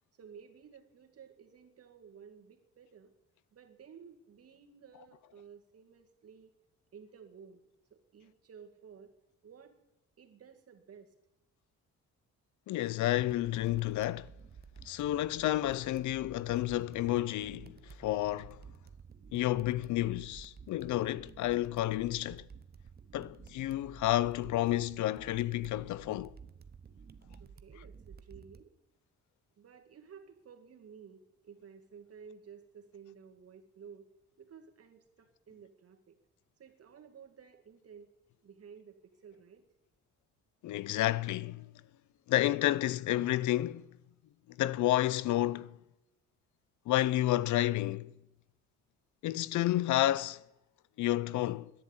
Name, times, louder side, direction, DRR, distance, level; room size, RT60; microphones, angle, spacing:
voice 1, 0.1-3.1 3.5-6.5 6.9-7.6 7.9-9.1 9.4-9.8 10.2-11.1 27.4-28.7 29.6-34.1 34.4-36.2 36.6-38.1 38.4-39.6, right 7 dB, 50° right, 2.2 m, -54 dB
voice 2, 12.7-14.3 14.8-18.6 19.3-22.5 23.1-26.3 40.6-41.7 42.3-43.9 44.5-45.8 46.9-48.1 49.2-50.4 51.0-51.7, left 14 dB, 75° left, 0.6 m, -30 dB
sound 1, 13.2-28.6, right 6 dB, 35° right, 0.8 m, -53 dB
11.0 x 9.9 x 8.9 m
cardioid pair, 90°, 30 cm